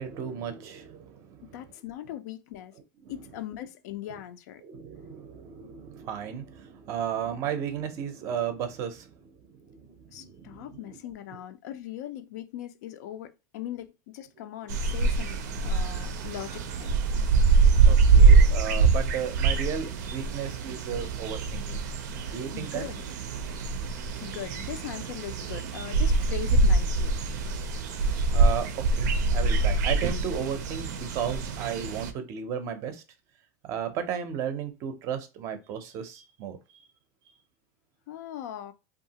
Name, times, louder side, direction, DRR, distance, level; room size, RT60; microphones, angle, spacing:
voice 1, 0.0-1.6 3.0-3.1 4.6-11.0 17.8-21.8 22.3-22.8 28.3-33.0 33.7-36.6, right 8 dB, 35° right, 0.5 m, -34 dB
voice 2, 1.5-2.7 3.1-4.6 10.1-17.0 22.5-23.0 24.2-27.2 38.1-38.7, left 12 dB, 75° left, 0.4 m, -40 dB
sound 1, 14.7-32.1, right 4 dB, 90° right, 0.4 m, -24 dB
2.7 x 2.4 x 2.7 m
supercardioid pair, 165°, 9 cm